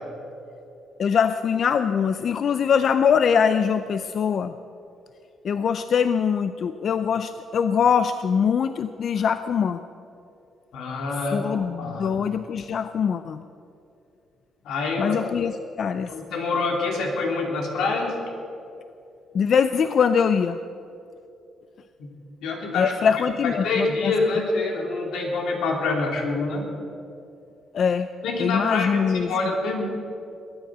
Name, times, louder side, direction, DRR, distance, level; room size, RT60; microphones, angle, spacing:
voice 1, 1.0-4.5 5.4-9.8 11.3-13.4 15.0-15.5 15.8-16.1 19.3-20.6 22.7-24.1 27.7-28.1 28.4-29.3, left 7 dB, 55° left, 11 dB, 0.5 m, -22 dB
voice 2, 10.7-12.1 14.6-15.2 16.1-18.2 22.0-22.1 22.4-26.7 28.2-29.8, left 3 dB, 85° left, 1 dB, 2.8 m, -26 dB
21.0 x 9.5 x 6.1 m, 2.7 s
cardioid pair, 105°, 0 cm